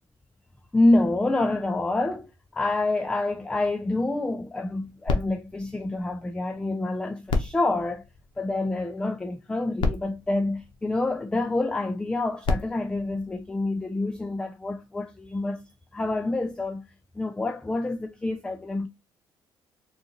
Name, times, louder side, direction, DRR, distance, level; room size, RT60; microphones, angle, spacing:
voice 1, 0.7-8.0 8.4-15.6 15.9-16.8 17.2-18.9, left 2 dB, 10° left, 0.3 m, -27 dB
sound 1, 5.0-6.7 7.2-8.8 9.5-9.6 9.8-11.4 12.2-14.0 14.7-14.8, left 3 dB, 70° left, 0.7 m, -32 dB
3.8 x 2.4 x 2.8 m
cardioid pair, 100°, 9 cm